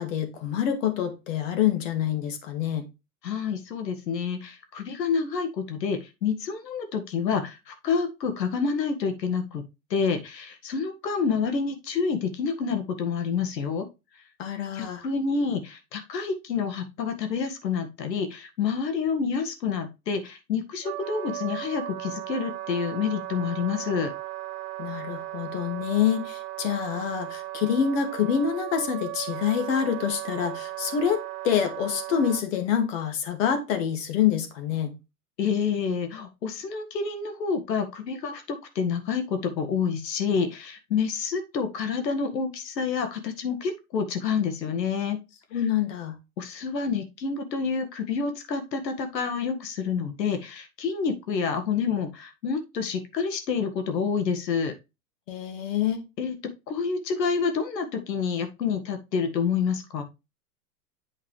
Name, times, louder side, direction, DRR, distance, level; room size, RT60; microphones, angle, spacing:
voice 1, 0.0-2.9 14.4-15.0 24.8-35.0 45.5-46.2 55.3-56.0, left 8 dB, 50° left, 7 dB, 2.2 m, -26 dB
voice 2, 3.2-9.6 9.9-13.9 14.7-24.1 35.4-45.2 46.4-54.7 56.2-56.3 56.7-60.0, left 5 dB, 85° left, 7 dB, 1.8 m, -28 dB
Wind instrument woodwind instrument, 20.8-32.4, right 15 dB, 40° right, 0.7 m, -36 dB
8.3 x 5.4 x 3.2 m, 0.25 s
hypercardioid pair, 140°, 49 cm